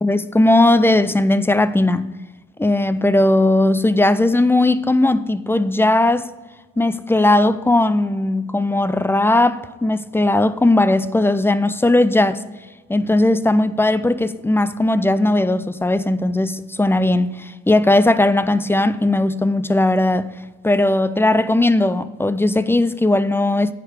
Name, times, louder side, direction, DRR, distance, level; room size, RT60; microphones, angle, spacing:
voice 1, 0.0-2.1 2.6-6.3 6.8-12.4 12.9-20.3 20.6-23.7, left 2 dB, 10° left, 0.4 m, -17 dB
9.8 x 4.7 x 6.6 m
cardioid pair, 90°, 30 cm